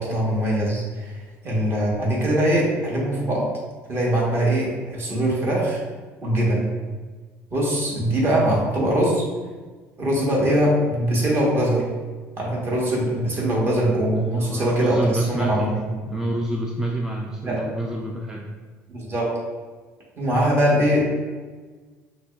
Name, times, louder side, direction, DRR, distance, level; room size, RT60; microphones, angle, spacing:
voice 1, 0.0-3.5 3.9-5.8 6.2-6.7 7.5-9.2 10.0-11.8 12.4-16.3 17.4-17.6 18.9-19.3 20.2-21.0, right 1 dB, 40° right, -4 dB, 1.3 m, -22 dB
voice 2, 14.2-15.7 16.1-18.5, right 1 dB, 10° right, -1 dB, 0.3 m, -27 dB
5.8 x 2.1 x 2.4 m, 1.4 s
supercardioid pair, 90°, 6 cm